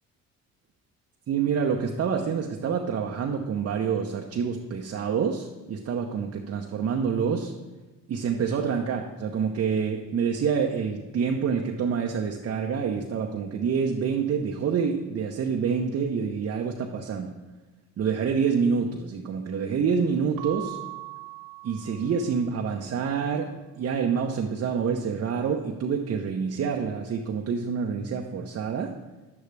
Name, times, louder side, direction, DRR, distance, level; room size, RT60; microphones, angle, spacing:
voice 1, 1.3-7.5 8.1-17.3 18.0-20.8 21.6-29.0, right 6 dB, 45° right, 2 dB, 0.8 m, -27 dB
Keyboard (musical) / Bell, 20.4-22.8, right 17 dB, 75° right, 0.6 m, -41 dB
9.8 x 8.2 x 3.3 m, 1.1 s
supercardioid pair, 70°, 33 cm